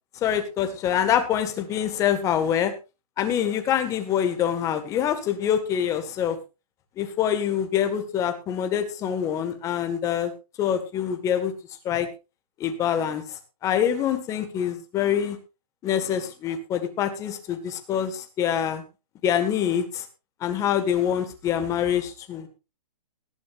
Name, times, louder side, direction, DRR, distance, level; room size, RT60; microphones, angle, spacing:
voice 1, 0.2-2.7 3.2-6.4 7.0-10.3 10.6-11.5 11.8-12.1 12.6-15.4 15.8-18.8 19.2-20.1 20.4-22.5, left 9 dB, 15° left, 8 dB, 1.9 m, -25 dB
19.5 x 12.0 x 2.6 m, 0.29 s
hypercardioid pair, 160°, 20 cm